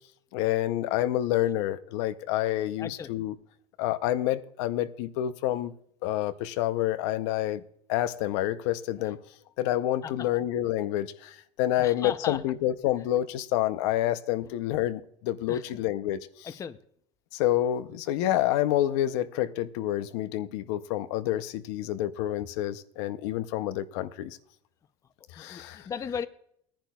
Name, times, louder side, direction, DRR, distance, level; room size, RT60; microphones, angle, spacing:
voice 1, 0.3-3.3 3.8-5.7 6.0-7.6 7.9-9.2 9.6-16.5 17.3-24.4 25.3-25.9, left 13 dB, 85° left, 0.6 m, -28 dB
voice 2, 2.8-3.1 10.0-10.3 11.8-12.4 15.5-15.8 16.4-16.8 25.3-26.3, left 7 dB, 20° left, 0.5 m, -36 dB
19.5 x 10.5 x 2.3 m
cardioid pair, 140°, 15 cm